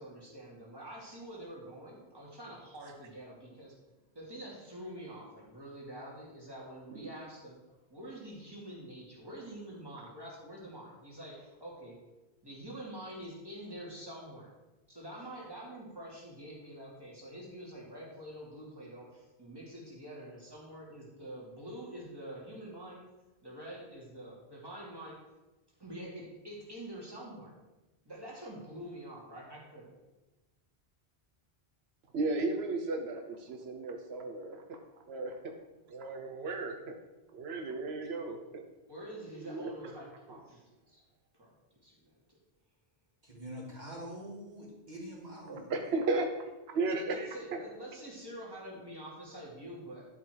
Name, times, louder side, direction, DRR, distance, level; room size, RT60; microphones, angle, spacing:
voice 1, 0.0-3.8 4.1-12.1 12.4-14.6 14.9-23.0 23.4-25.2 25.8-27.5 28.0-30.0 38.9-41.0 41.3-41.5 41.8-42.4 47.0-50.1, right 1 dB, 25° right, -5 dB, 2.7 m, -46 dB
voice 2, 32.1-34.8 35.1-35.5 35.9-37.0 37.3-38.6 39.4-39.7 40.3-40.4 45.5-46.3 46.7-47.6, right 3 dB, 85° right, 4 dB, 1.0 m, -35 dB
voice 3, 43.2-45.7, equal, 45° right, -5 dB, 2.8 m, -45 dB
11.5 x 4.9 x 4.7 m, 1.1 s
omnidirectional pair, 1.0 m